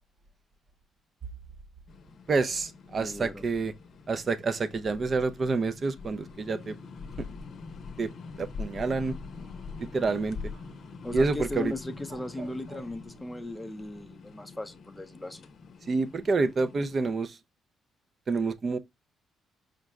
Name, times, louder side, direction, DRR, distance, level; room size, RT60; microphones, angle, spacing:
sound 1, 1.9-17.1, left 4 dB, 60° left, 0.6 m, -44 dB
voice 1, 2.3-3.7 4.1-6.7 7.2-7.3 8.0-8.1 8.4-9.1 9.8-10.4 11.1-11.7 15.9-17.4 18.3-18.8, right 3 dB, 40° right, 0.5 m, -28 dB
voice 2, 3.0-3.5 11.0-15.5, left 1 dB, 5° left, 0.5 m, -37 dB
Bird, 8.7-14.2, right 2 dB, 70° right, 1.5 m, -54 dB
5.1 x 2.1 x 3.5 m
cardioid pair, 90°, 0 cm